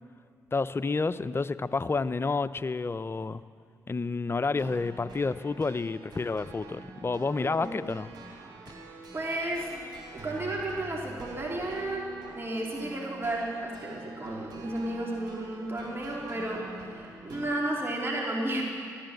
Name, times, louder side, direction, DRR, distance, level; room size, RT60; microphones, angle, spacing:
voice 1, 0.5-3.4 3.9-8.1, left 4 dB, 30° left, 14 dB, 0.6 m, -29 dB
sound 1, 4.4-17.4, right 3 dB, 65° right, 3.5 m, -46 dB
voice 2, 9.1-9.9 10.1-12.0 12.3-18.6, right 1 dB, 30° right, -3 dB, 3.4 m, -33 dB
15.0 x 11.5 x 7.9 m, 2.3 s
supercardioid pair, 50°, 8 cm